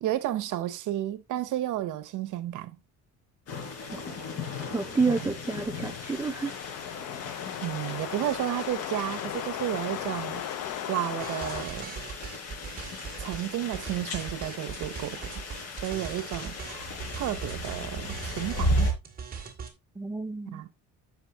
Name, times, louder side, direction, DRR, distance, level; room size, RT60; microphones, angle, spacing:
voice 1, 0.0-2.8 5.1-5.2 7.6-10.4 10.9-11.9 13.2-15.4 15.8-18.9 20.5-20.7, right 13 dB, 70° right, 0.9 m, -32 dB
sound 1, 3.5-18.9, left 1 dB, 50° left, 4.5 m, -36 dB
voice 2, 4.7-6.5 7.0-7.1 20.0-20.6, right 4 dB, 10° right, 0.5 m, -29 dB
sound 2, 5.9-11.6, left 12 dB, 70° left, 0.7 m, -37 dB
sound 3, 11.2-13.5 13.7-19.7, right 6 dB, 30° right, 2.2 m, -40 dB
9.9 x 7.2 x 2.8 m
cardioid pair, 145°, 31 cm